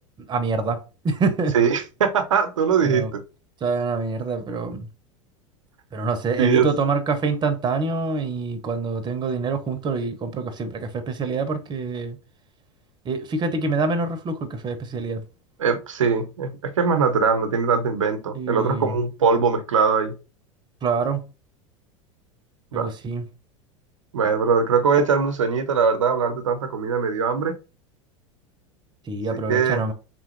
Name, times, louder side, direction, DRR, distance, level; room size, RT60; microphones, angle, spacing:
voice 1, 0.3-1.6 2.8-3.1 3.6-4.9 5.9-12.2 13.0-15.2 18.3-19.0 20.8-21.3 22.7-23.2 29.1-29.9, right 4 dB, 30° right, 0.8 m, -26 dB
voice 2, 1.5-3.2 6.4-6.7 15.6-20.1 22.7-22.9 24.1-27.5 29.3-29.8, right 6 dB, 85° right, 0.7 m, -21 dB
3.5 x 3.1 x 3.0 m
hypercardioid pair, 85°, 16 cm